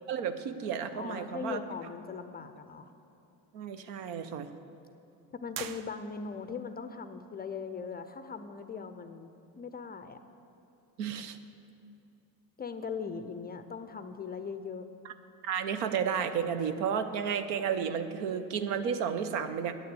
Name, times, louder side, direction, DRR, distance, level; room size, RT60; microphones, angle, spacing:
voice 1, 0.1-1.6 3.5-4.5 11.0-11.4 15.0-15.1 15.4-19.7, right 7 dB, 75° right, 10 dB, 0.9 m, -32 dB
voice 2, 0.9-2.9 5.3-9.3 9.6-10.2 12.6-14.9, left 5 dB, 20° left, 9 dB, 0.4 m, -40 dB
sound 1, 5.5-6.5, right 9 dB, 45° right, 0.6 m, -43 dB
9.5 x 6.6 x 8.2 m, 2.8 s
supercardioid pair, 85°, 50 cm